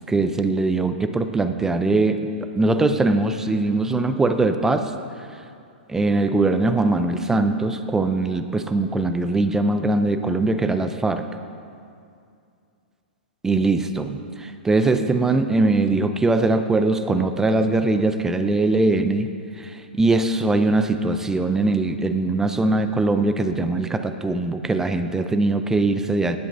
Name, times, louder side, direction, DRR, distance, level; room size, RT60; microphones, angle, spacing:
voice 1, 0.1-2.3 2.6-4.9 5.9-11.2 13.4-19.3 19.6-26.4, right 2 dB, 10° right, 8 dB, 0.5 m, -21 dB
16.5 x 10.5 x 2.6 m, 2.4 s
hypercardioid pair, 120°, 6 cm